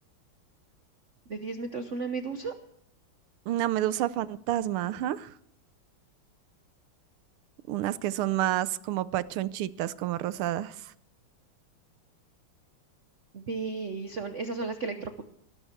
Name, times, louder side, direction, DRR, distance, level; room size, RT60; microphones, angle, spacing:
voice 1, 1.3-2.5 13.3-15.2, right 4 dB, 50° right, 7 dB, 1.0 m, -34 dB
voice 2, 3.5-5.3 7.7-10.8, right 13 dB, 90° right, 16 dB, 1.6 m, -29 dB
18.5 x 12.5 x 4.5 m, 0.72 s
omnidirectional pair, 2.3 m